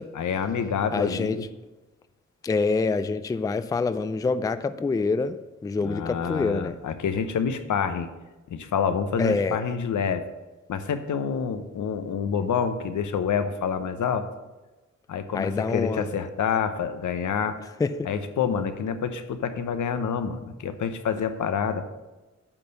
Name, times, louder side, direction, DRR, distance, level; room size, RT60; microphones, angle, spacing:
voice 1, 0.1-1.4 5.8-8.1 8.5-10.3 10.7-14.3 15.1-17.6 18.1-21.8, left 7 dB, 80° left, 9 dB, 0.8 m, -27 dB
voice 2, 0.9-1.4 2.4-5.4 5.6-6.8 9.2-9.6 15.3-16.0 17.8-18.1, left 4 dB, 15° left, 12 dB, 0.3 m, -26 dB
8.7 x 4.4 x 6.8 m, 1.1 s
cardioid pair, 95°, 30 cm